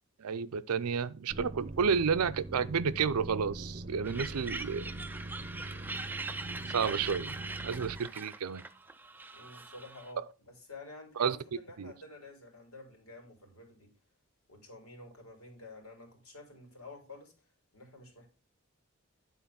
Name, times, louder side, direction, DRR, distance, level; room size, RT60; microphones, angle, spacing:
voice 1, 0.2-4.8 6.7-7.3 7.6-8.6 11.2-11.4 11.8-11.9, right 6 dB, 90° right, 0.5 m, -31 dB
sound 1, 1.3-8.0, right 1 dB, 35° right, 0.7 m, -43 dB
sound 2, 4.0-10.1, right 3 dB, 10° right, 0.3 m, -42 dB
voice 2, 9.3-13.9 14.5-17.5 17.7-18.3, left 2 dB, 80° left, 3.2 m, -50 dB
9.4 x 4.0 x 5.7 m
head